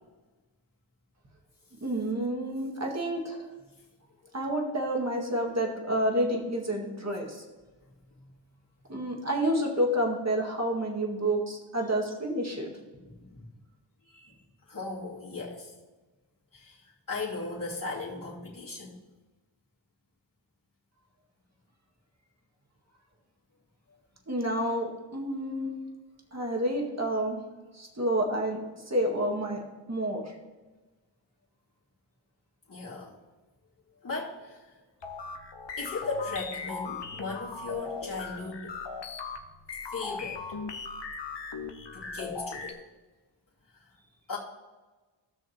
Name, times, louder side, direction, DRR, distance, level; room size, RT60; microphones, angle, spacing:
voice 1, 1.8-3.5 4.3-7.4 8.9-12.7 24.3-25.7 26.3-27.4 27.7-29.6 29.9-30.4, right 1 dB, 30° right, 0 dB, 1.9 m, -29 dB
voice 2, 14.1-15.7 16.5-19.0 32.7-33.1 34.0-34.6 35.8-38.7 39.9-40.4 41.9-42.8 44.3-44.4, left 3 dB, 40° left, -8 dB, 2.6 m, -37 dB
sound 1, 35.0-42.7, left 4 dB, 55° left, 1.0 m, -38 dB
15.5 x 6.4 x 2.9 m, 1.2 s
cardioid pair, 55°, 49 cm